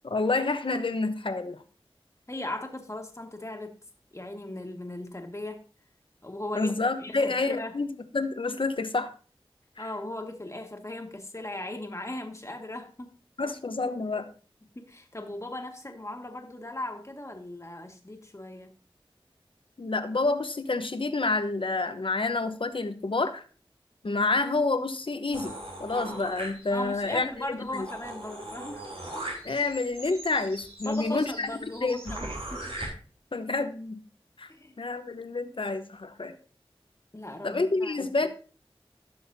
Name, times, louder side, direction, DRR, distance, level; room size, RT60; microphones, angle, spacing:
voice 1, 0.0-1.6 6.5-9.1 9.8-9.9 13.4-14.3 19.8-23.4 24.0-27.9 29.4-31.5 31.8-32.2 33.3-34.0 34.4-34.5 34.8-36.3 37.4-38.3, left 3 dB, 60° left, 9 dB, 1.0 m, -28 dB
voice 2, 2.3-3.7 4.1-5.6 6.2-7.8 9.8-13.1 14.7-18.7 26.7-28.9 30.8-32.8 34.5-34.7 37.1-38.3, left 1 dB, 30° left, 4 dB, 1.7 m, -38 dB
sound 1, 25.3-27.0 27.4-27.5 27.7-32.9, right 1 dB, 80° right, 3.4 m, -40 dB
15.5 x 6.4 x 2.7 m, 0.38 s
wide cardioid pair, 45°, 10 cm